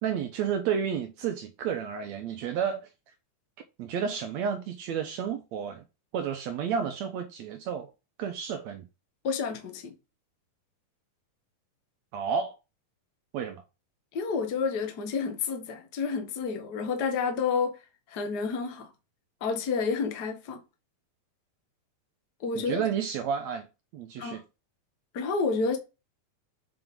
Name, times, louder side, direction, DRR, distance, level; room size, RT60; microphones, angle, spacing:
voice 1, 0.0-2.9 3.8-5.8 6.1-7.9 8.2-8.8 12.1-12.5 13.3-13.6 22.5-23.7 23.9-24.4, right 7 dB, 75° right, 1.7 m, -31 dB
voice 2, 9.2-9.9 14.1-17.8 18.1-18.9 19.4-20.6 22.4-22.8 24.2-24.4 25.1-25.8, left 5 dB, 70° left, 0.9 m, -29 dB
7.7 x 5.0 x 3.7 m
omnidirectional pair, 4.0 m